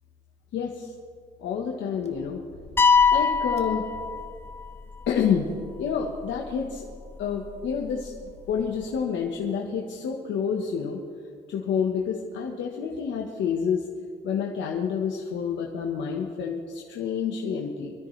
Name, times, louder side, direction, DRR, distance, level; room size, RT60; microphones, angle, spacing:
voice 1, 0.5-0.9 1.4-2.4 3.1-3.9 5.1-5.5 5.8-6.9 7.2-11.0 11.5-13.8 14.2-17.9, left 7 dB, 85° left, 0 dB, 1.3 m, -28 dB
sound 1, 2.0-9.4, left 3 dB, 35° left, 1.3 m, -45 dB
sound 2, 2.8-4.7, left 5 dB, 10° left, 0.3 m, -21 dB
24.0 x 13.0 x 3.3 m, 2.2 s
cardioid pair, 135°, 19 cm